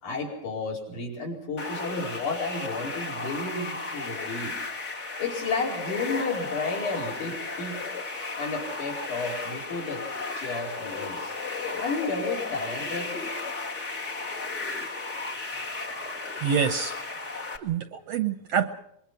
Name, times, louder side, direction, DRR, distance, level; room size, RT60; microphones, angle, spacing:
voice 1, 0.0-4.6 5.2-7.8 8.4-10.1 10.3-11.3 11.7-13.2, left 3 dB, 70° left, -2 dB, 6.2 m, -32 dB
sound 1, 1.6-17.6, left 3 dB, 30° left, 1.4 m, -34 dB
voice 2, 16.4-17.0 17.3-18.7, right 7 dB, 65° right, 9 dB, 1.7 m, -27 dB
24.5 x 21.5 x 5.8 m, 0.75 s
omnidirectional pair, 3.6 m